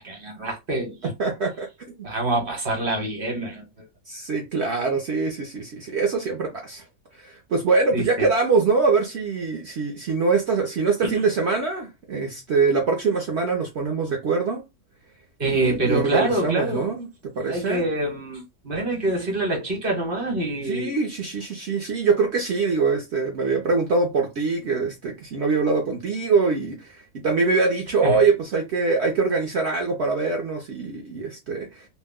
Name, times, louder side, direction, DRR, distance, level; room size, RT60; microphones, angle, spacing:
voice 1, 0.0-1.1 2.0-3.6 7.9-8.3 11.0-11.1 15.4-16.9 17.5-20.9 28.0-28.2, right 1 dB, 40° right, 1.1 m, -26 dB
voice 2, 1.2-1.7 4.1-6.8 7.1-14.6 15.4-17.1 17.4-17.9 20.6-31.9, right 4 dB, 60° right, 0.7 m, -23 dB
2.6 x 2.1 x 3.5 m
omnidirectional pair, 1.7 m